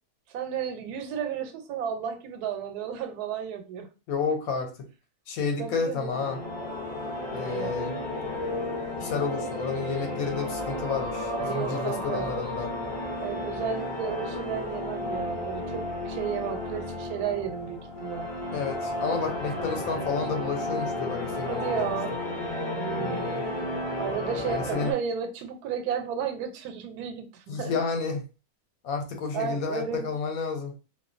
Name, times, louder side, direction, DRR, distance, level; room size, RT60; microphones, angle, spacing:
voice 1, 0.3-3.9 5.6-6.1 7.3-7.8 11.3-12.3 13.2-18.3 21.5-22.1 22.7-23.3 24.0-27.7 29.3-30.1, right 7 dB, 90° right, 6 dB, 1.1 m, -33 dB
voice 2, 4.1-4.9 5.3-6.4 7.3-8.0 9.0-12.7 18.5-21.9 23.0-23.4 24.4-24.9 27.5-28.2 28.8-30.8, left 5 dB, 75° left, 4 dB, 1.0 m, -31 dB
sound 1, 6.1-24.9, left 1 dB, 45° left, 0.7 m, -33 dB
2.5 x 2.2 x 2.4 m, 0.31 s
omnidirectional pair, 1.6 m